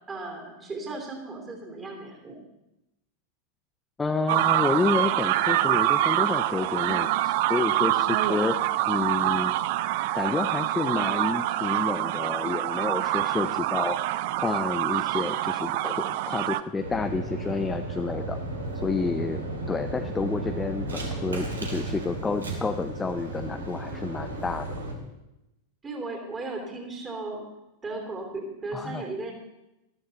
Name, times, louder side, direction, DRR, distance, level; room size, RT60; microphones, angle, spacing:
voice 1, 0.1-2.4 25.8-27.4 27.8-29.3, right 2 dB, 20° right, 2 dB, 3.2 m, -36 dB
voice 2, 4.0-8.6 8.9-9.6 10.1-14.1 14.4-18.4 18.8-19.4 19.7-24.8 28.7-29.0, left 4 dB, 15° left, 8 dB, 0.6 m, -29 dB
sound 1, 4.3-16.6, right 14 dB, 50° right, 0.5 m, -26 dB
sound 2, 16.8-24.9, right 2 dB, 75° right, 2.4 m, -34 dB
13.5 x 13.0 x 4.1 m, 0.94 s
figure-of-eight pair, 90°, 0 cm